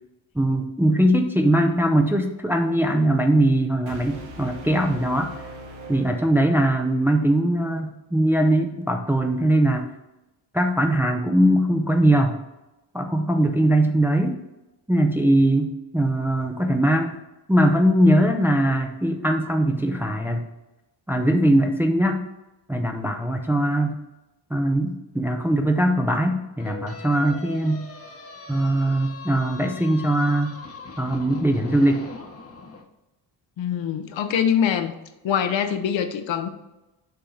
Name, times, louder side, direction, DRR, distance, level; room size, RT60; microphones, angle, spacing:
voice 1, 0.4-5.3 5.9-9.9 10.5-12.4 12.9-14.4 14.9-17.2 17.5-20.5 21.1-22.2 22.7-23.9 24.5-27.8 28.5-30.5 31.0-32.0, right 1 dB, 5° right, 4 dB, 0.5 m, -21 dB
sound 1, 3.9-6.9, right 1 dB, 85° right, 1.5 m, -41 dB
sound 2, 26.6-32.8, left 4 dB, 30° left, 0.9 m, -41 dB
voice 2, 33.6-34.9 35.2-36.5, left 8 dB, 70° left, 8 dB, 0.8 m, -23 dB
6.8 x 3.7 x 5.7 m, 0.97 s
cardioid pair, 130°, 47 cm